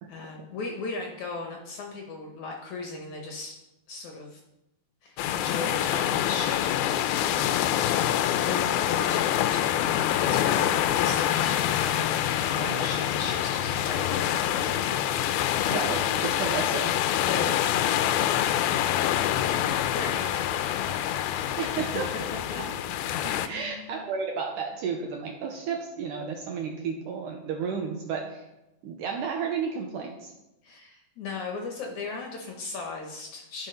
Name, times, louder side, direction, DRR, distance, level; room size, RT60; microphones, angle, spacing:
voice 1, 0.1-3.6 3.9-4.4 5.0-7.5 8.3-9.9 10.2-15.1 17.3-18.2 19.6-21.4 21.9-22.0 22.5-22.6 23.5-24.0 30.6-33.7, left 3 dB, 65° left, 1 dB, 2.1 m, -37 dB
sound 1, 5.2-23.5, left 11 dB, 85° left, 2.4 m, -26 dB
voice 2, 15.7-17.3 21.6-22.1 23.2-28.4 28.8-30.3, right 6 dB, 75° right, 2 dB, 2.0 m, -32 dB
11.5 x 5.9 x 5.5 m, 0.93 s
omnidirectional pair, 4.5 m